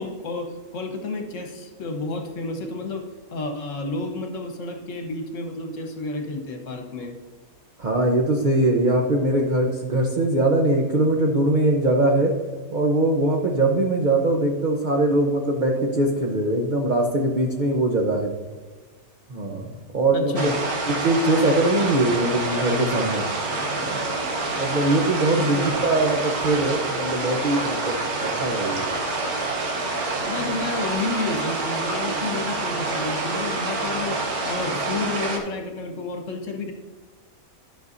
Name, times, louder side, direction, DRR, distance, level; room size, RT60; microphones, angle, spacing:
voice 1, 0.0-3.1 3.3-7.1 20.1-20.5 25.3-25.8 30.3-34.2 34.5-36.7, left 3 dB, 60° left, 4 dB, 1.4 m, -30 dB
voice 2, 7.8-12.3 12.7-18.3 19.3-19.7 19.9-20.5 21.0-23.2 23.8-24.1 24.6-28.8, right 2 dB, 40° right, 0 dB, 0.8 m, -22 dB
sound 1, 20.3-35.4, right 2 dB, 75° right, 1.7 m, -27 dB
12.5 x 6.3 x 2.6 m, 1.4 s
omnidirectional pair, 1.6 m